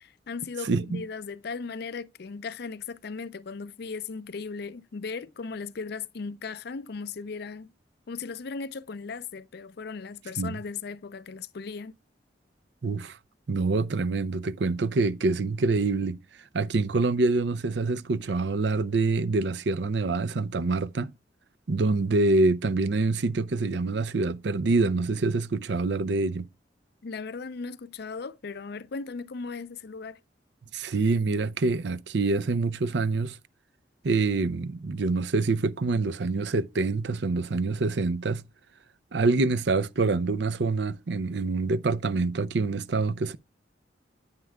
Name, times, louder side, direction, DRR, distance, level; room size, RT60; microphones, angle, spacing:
voice 1, 0.0-7.7 8.1-12.0 27.0-30.2, left 5 dB, 60° left, 0.5 m, -37 dB
voice 2, 0.6-1.0 10.4-10.6 12.8-13.2 13.5-16.2 16.5-21.1 21.7-26.5 30.7-33.4 34.0-38.4 39.1-43.4, right 3 dB, 70° right, 0.6 m, -26 dB
9.6 x 8.9 x 2.2 m
head